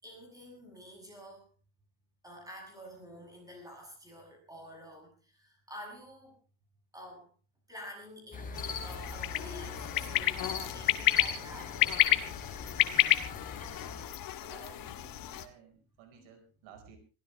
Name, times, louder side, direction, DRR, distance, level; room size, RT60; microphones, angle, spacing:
voice 1, 0.0-1.5 2.2-6.4 6.9-7.3 7.7-11.9, equal, 10° right, 1 dB, 7.8 m, -49 dB
sound 1, 8.3-14.1, left 4 dB, 15° left, 3.3 m, -42 dB
sound 2, 8.5-15.5, left 13 dB, 45° left, 1.5 m, -30 dB
voice 2, 14.4-17.0, right 7 dB, 80° right, 6 dB, 4.9 m, -54 dB
22.5 x 16.0 x 3.3 m, 0.33 s
cardioid pair, 160°, 46 cm